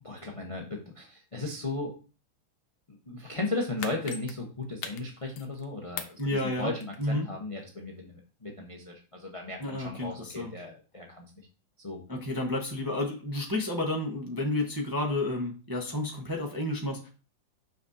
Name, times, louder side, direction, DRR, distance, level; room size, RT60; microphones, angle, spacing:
voice 1, 0.0-1.9 3.1-11.3 11.8-12.0, left 2 dB, 30° left, 1 dB, 0.6 m, -36 dB
sound 1, 3.5-5.6 6.0-7.2 7.6-7.7, left 8 dB, 85° left, 1.6 m, -41 dB
voice 2, 6.2-6.7 7.0-7.3 9.6-10.5 12.1-17.1, left 1 dB, 15° right, 0 dB, 0.7 m, -31 dB
6.9 x 5.9 x 2.8 m, 0.34 s
omnidirectional pair, 2.2 m